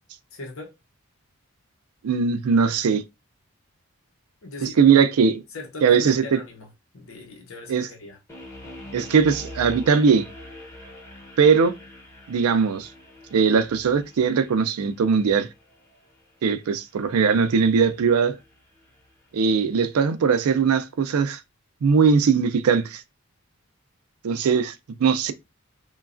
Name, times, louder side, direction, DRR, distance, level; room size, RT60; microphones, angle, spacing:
voice 1, 0.3-0.7 4.4-4.8 5.5-6.7 6.9-8.2, left 2 dB, 70° left, 0.8 m, -38 dB
voice 2, 2.0-3.0 4.6-5.4 5.8-6.4 7.7-7.9 8.9-10.3 11.4-11.7 12.3-12.9 13.3-15.5 16.4-18.4 19.3-21.4 21.8-23.0 24.2-24.7 25.0-25.3, right 6 dB, 85° right, 0.4 m, -20 dB
sound 1, 8.3-19.3, left 1 dB, 15° left, 0.8 m, -44 dB
3.1 x 2.3 x 2.4 m
head